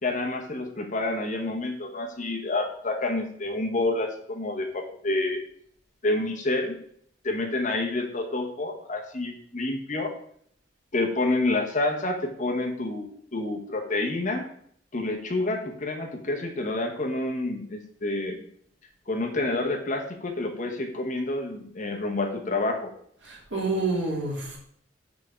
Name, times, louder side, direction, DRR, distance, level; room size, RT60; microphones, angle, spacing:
voice 1, 0.0-5.4 6.0-6.8 7.2-10.1 10.9-14.4 14.9-18.4 19.1-22.9, left 2 dB, 45° left, 3 dB, 1.1 m, -28 dB
voice 2, 23.2-24.6, right 3 dB, 80° right, -2 dB, 2.1 m, -28 dB
6.0 x 3.7 x 5.8 m, 0.64 s
head